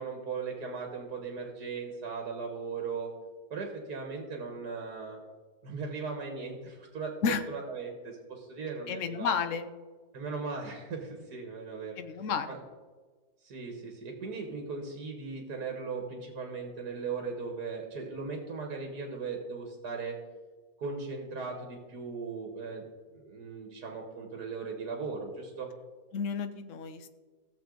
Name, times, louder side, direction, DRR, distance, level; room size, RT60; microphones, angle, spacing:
voice 1, 0.0-3.1 3.5-5.2 5.6-9.3 10.1-12.0 12.5-12.6 13.4-20.2 20.8-22.9 23.1-25.7, right 4 dB, 80° right, 2 dB, 1.9 m, -38 dB
voice 2, 8.9-9.7 12.0-12.6 26.1-27.1, left 6 dB, 60° left, 9 dB, 1.1 m, -31 dB
16.0 x 7.2 x 3.9 m, 1.4 s
omnidirectional pair, 1.7 m